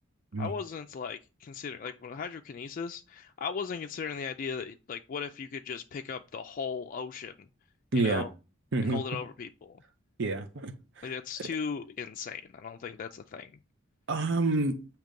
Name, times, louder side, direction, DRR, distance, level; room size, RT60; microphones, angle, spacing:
voice 1, 0.4-7.5 7.9-8.3 8.8-9.8 11.0-13.5, left 6 dB, 45° left, 0.3 m, -37 dB
voice 2, 7.9-8.2 8.7-9.0 10.2-11.1 11.4-11.5 14.1-14.8, right 2 dB, 65° right, 0.7 m, -28 dB
7.6 x 2.9 x 5.2 m
head